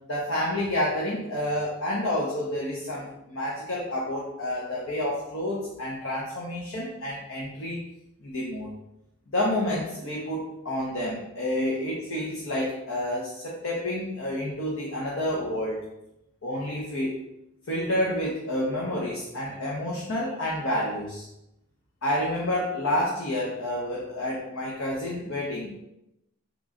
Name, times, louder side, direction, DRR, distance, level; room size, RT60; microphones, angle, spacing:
voice 1, 0.1-7.8 8.2-8.7 9.3-15.8 16.4-17.2 17.7-21.2 22.0-25.8, left 1 dB, 80° left, -3 dB, 0.8 m, -29 dB
3.7 x 3.1 x 3.7 m, 0.86 s
head